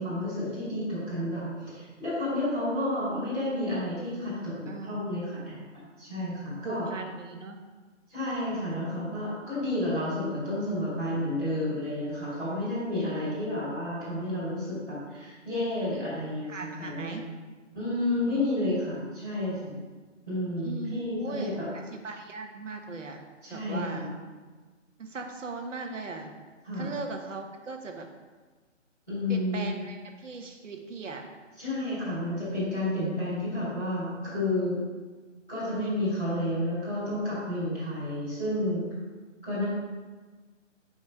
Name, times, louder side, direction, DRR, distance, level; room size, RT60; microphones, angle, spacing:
voice 1, 0.0-5.5 6.0-6.8 8.1-17.3 17.7-19.8 20.2-21.7 23.4-24.1 26.6-26.9 29.1-29.8 31.6-34.8 35.5-38.8 39.4-39.6, left 1 dB, ahead, -25 dB, 0.7 m, -31 dB
voice 2, 4.7-5.0 6.6-7.6 16.5-17.3 18.3-18.5 20.6-23.2 23.5-24.1 25.0-26.3 26.7-28.1 29.3-31.2 39.5-39.7, right 4 dB, 75° right, 4 dB, 1.1 m, -38 dB
5.3 x 5.2 x 4.7 m, 1.4 s
hypercardioid pair, 175°, 38 cm